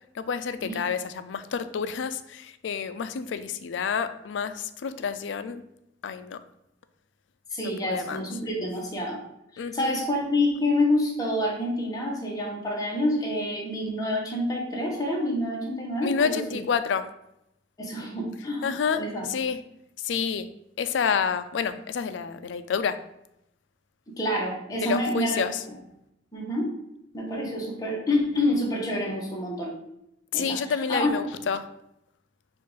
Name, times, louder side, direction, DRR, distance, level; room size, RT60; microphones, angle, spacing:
voice 1, 0.1-5.6 6.0-6.4 7.6-8.2 9.6-10.0 16.0-17.1 18.6-19.6 20.0-20.5 20.8-23.0 24.8-25.6 30.3-31.7, left 6 dB, 85° left, 11 dB, 0.4 m, -29 dB
voice 2, 7.5-9.2 9.5-16.6 17.8-19.3 24.2-25.5 26.3-26.7 27.1-29.7 30.3-31.1, left 1 dB, 20° left, -2 dB, 1.0 m, -27 dB
4.5 x 2.5 x 4.8 m, 0.82 s
head